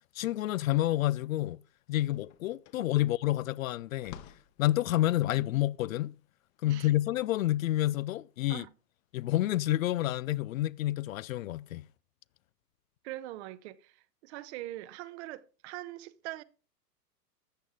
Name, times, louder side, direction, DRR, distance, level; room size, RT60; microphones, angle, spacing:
voice 1, 0.2-1.6 1.9-4.2 4.6-6.1 6.6-8.6 9.1-11.9, left 15 dB, 60° left, 0.6 m, -29 dB
sound 1, 1.7-8.0, left 10 dB, 40° left, 1.2 m, -54 dB
voice 2, 13.0-16.4, right 16 dB, 45° right, 1.0 m, -43 dB
14.0 x 9.1 x 3.8 m
hypercardioid pair, 110°, 48 cm